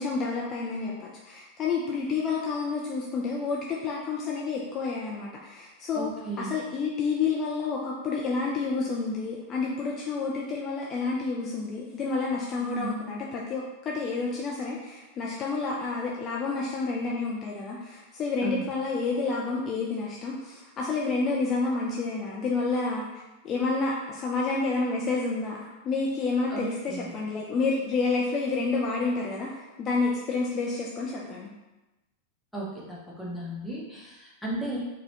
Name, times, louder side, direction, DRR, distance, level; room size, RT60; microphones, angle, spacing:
voice 1, 0.0-6.1 6.4-31.5, left 4 dB, 30° left, -3 dB, 0.4 m, -29 dB
voice 2, 5.9-6.5 12.6-12.9 18.4-18.7 26.5-27.1 32.5-34.8, right 2 dB, ahead, -6 dB, 0.9 m, -35 dB
4.1 x 2.2 x 2.8 m, 1.1 s
figure-of-eight pair, 90°, 0 cm